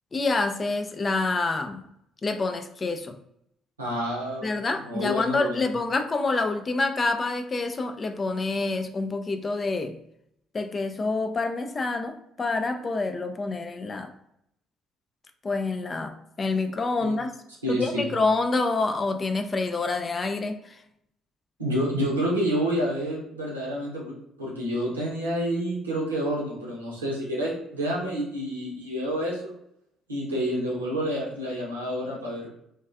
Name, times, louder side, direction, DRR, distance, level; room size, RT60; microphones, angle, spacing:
voice 1, 0.1-1.8 2.2-3.1 4.4-10.0 10.5-14.1 15.4-17.3 17.7-20.8, left 3 dB, 30° left, 7 dB, 0.3 m, -27 dB
voice 2, 3.8-4.5 4.8-5.7 17.0-17.1 17.6-18.1 21.6-24.1 24.4-29.5 30.1-32.5, equal, 85° right, -4 dB, 0.7 m, -28 dB
2.4 x 2.3 x 2.4 m, 0.74 s
figure-of-eight pair, 50°, 0 cm